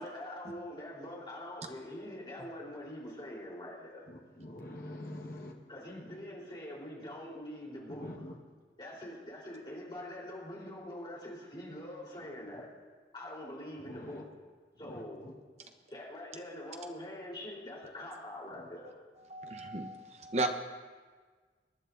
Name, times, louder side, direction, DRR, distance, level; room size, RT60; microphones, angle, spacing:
voice 1, 0.0-4.1 5.7-8.3 8.8-12.7 13.1-14.2 14.8-15.2 15.9-19.0, left 1 dB, 25° left, -4 dB, 3.8 m, -44 dB
voice 2, 4.1-5.5 7.9-8.3 13.8-14.2 14.8-15.3, left 1 dB, 55° left, 0 dB, 1.4 m, -45 dB
voice 3, 19.3-20.5, right 2 dB, 40° right, 5 dB, 0.9 m, -34 dB
24.0 x 11.0 x 2.7 m, 1.5 s
head